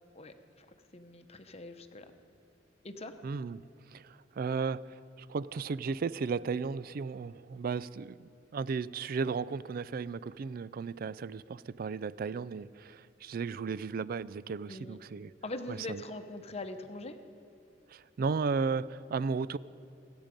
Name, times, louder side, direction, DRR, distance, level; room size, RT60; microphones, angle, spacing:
voice 1, 0.1-2.1 2.8-3.1 14.7-15.0 15.4-17.2, left 2 dB, 35° left, 7 dB, 0.9 m, -42 dB
voice 2, 3.2-3.6 3.9-15.3 15.7-16.0 17.9-19.6, right 5 dB, 50° right, 19 dB, 0.4 m, -35 dB
26.5 x 8.9 x 5.2 m, 2.8 s
head